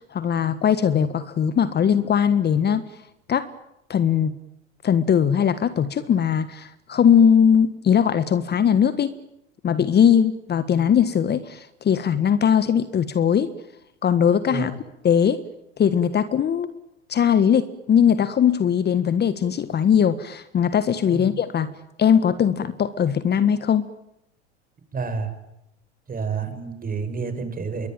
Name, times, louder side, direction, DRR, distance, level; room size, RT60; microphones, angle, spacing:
voice 1, 0.0-2.8 3.3-3.5 3.9-4.3 4.8-9.1 9.6-13.5 14.0-15.4 15.8-16.7 17.1-21.7 22.0-23.9, left 8 dB, 30° left, 14 dB, 1.5 m, -20 dB
voice 2, 24.9-25.3 26.1-27.9, right 5 dB, 25° right, 9 dB, 6.3 m, -29 dB
27.0 x 23.0 x 9.1 m, 0.84 s
hypercardioid pair, 90°, 34 cm